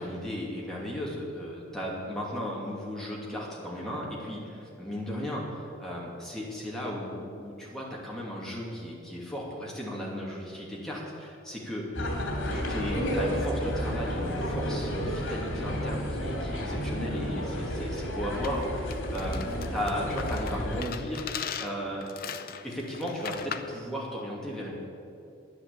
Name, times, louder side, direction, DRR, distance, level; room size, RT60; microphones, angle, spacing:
voice 1, 0.0-11.9 12.5-22.1 22.3-24.7, equal, ahead, -4 dB, 2.6 m, -35 dB
sound 1, 11.9-20.8, equal, 85° left, 2.7 m, -31 dB
sound 2, 18.4-23.8, left 7 dB, 45° left, 0.6 m, -39 dB
10.0 x 10.0 x 8.5 m, 2.6 s
head